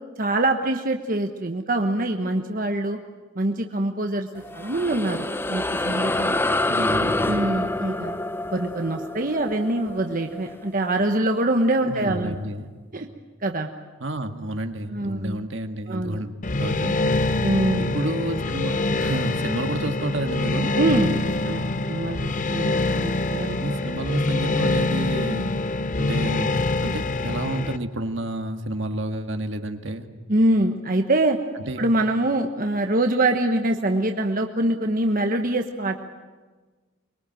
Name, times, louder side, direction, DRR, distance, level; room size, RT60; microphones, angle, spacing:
voice 1, 0.2-3.0 3.3-6.6 7.3-8.2 8.5-12.4 12.9-13.1 13.4-13.7 14.9-15.4 15.9-16.2 16.8-17.0 17.4-17.9 20.8-23.8 30.3-31.4 31.8-36.0, right 1 dB, 45° right, 4 dB, 1.2 m, -24 dB
sound 1, 4.4-11.2, left 2 dB, 10° left, 0.7 m, -27 dB
voice 2, 6.7-7.3 11.9-12.7 14.0-17.3 17.8-20.7 23.6-25.5 26.0-26.6 26.8-30.1 31.7-31.8, right 1 dB, 70° right, 6 dB, 1.8 m, -30 dB
sound 2, 16.4-27.8, left 2 dB, 40° left, 0.9 m, -25 dB
24.0 x 22.0 x 9.2 m, 1.3 s
head